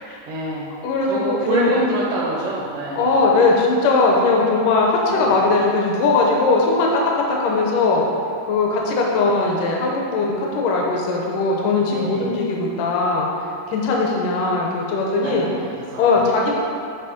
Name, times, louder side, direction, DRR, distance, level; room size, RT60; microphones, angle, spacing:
voice 1, 0.3-0.7 1.0-3.1 5.1-5.4 11.9-12.3 15.2-16.3, right 2 dB, 80° right, -3 dB, 2.3 m, -26 dB
voice 2, 0.8-1.7 2.9-8.1 8.5-13.3 13.7-15.5 16.0-16.6, left 3 dB, 75° left, -1 dB, 2.3 m, -19 dB
8.9 x 3.1 x 5.0 m, 2.4 s
omnidirectional pair, 3.8 m